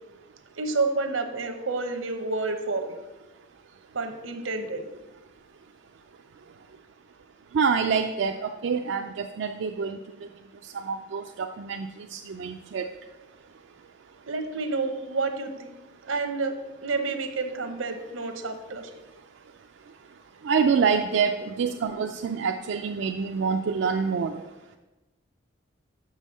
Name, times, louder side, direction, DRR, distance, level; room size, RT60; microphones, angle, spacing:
voice 1, 0.6-3.0 3.9-4.9 14.3-15.7 16.0-18.9, right 3 dB, 85° right, 7 dB, 0.9 m, -29 dB
voice 2, 7.5-10.0 10.7-12.9 20.4-24.4, right 6 dB, 65° right, 4 dB, 0.3 m, -26 dB
6.1 x 5.5 x 6.2 m, 1.1 s
head